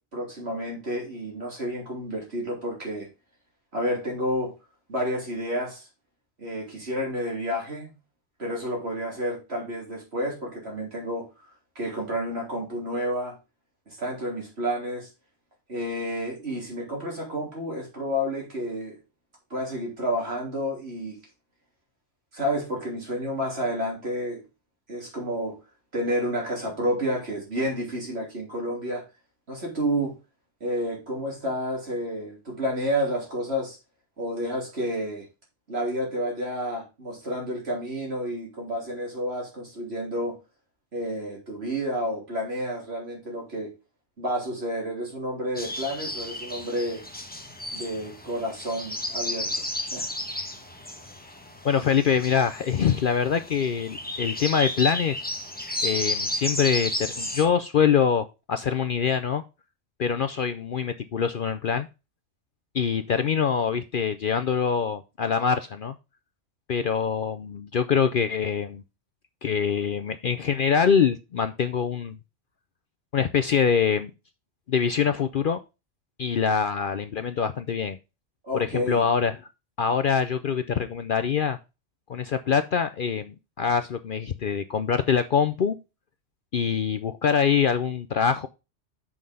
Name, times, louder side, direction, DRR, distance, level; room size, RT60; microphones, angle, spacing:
voice 1, 0.1-3.1 3.7-4.5 4.9-5.9 6.4-7.9 8.4-11.3 11.8-13.4 13.9-15.1 15.7-19.0 19.5-21.2 22.3-24.4 24.9-25.6 25.9-29.1 29.5-30.2 30.6-33.8 34.2-35.3 35.7-40.4 40.9-43.7 44.2-47.0 47.7-49.6 49.9-50.1 78.4-79.0, equal, 60° right, 3.8 m, -30 dB
sound 1, 45.6-57.5, left 1 dB, 10° left, 1.0 m, -33 dB
voice 2, 51.6-55.2 55.8-59.4 60.0-61.9 62.7-65.9 66.7-68.8 69.4-72.2 73.1-74.1 74.7-75.6 76.2-78.0 78.5-79.4 79.8-81.6 82.1-85.8 86.5-88.5, left 7 dB, 55° left, 0.7 m, -24 dB
6.3 x 5.9 x 5.4 m
omnidirectional pair, 1.2 m